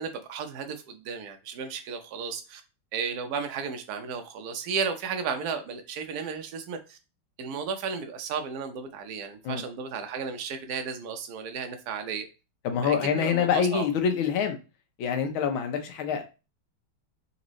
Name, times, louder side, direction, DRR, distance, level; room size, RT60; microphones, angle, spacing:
voice 1, 0.0-2.6 2.9-7.0 7.4-12.3 12.8-13.9, right 6 dB, 65° right, 6 dB, 1.0 m, -34 dB
voice 2, 12.6-14.6 15.0-16.3, left 7 dB, 80° left, 6 dB, 1.6 m, -26 dB
4.0 x 3.5 x 3.1 m, 0.30 s
omnidirectional pair, 2.3 m